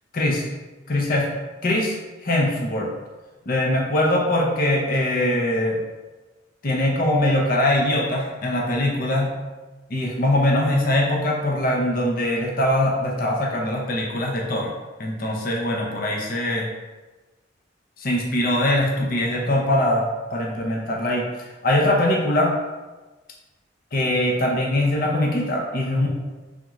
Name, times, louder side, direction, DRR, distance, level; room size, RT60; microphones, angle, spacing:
voice 1, 0.2-0.5 0.9-1.4 1.6-1.9 2.2-2.9 3.5-5.8 6.6-9.4 9.9-14.7 15.0-16.7 18.0-20.0 20.3-21.3 21.6-22.5 23.9-26.1, left 1 dB, 50° left, -1 dB, 0.6 m, -22 dB
3.6 x 3.6 x 3.0 m, 1.2 s
head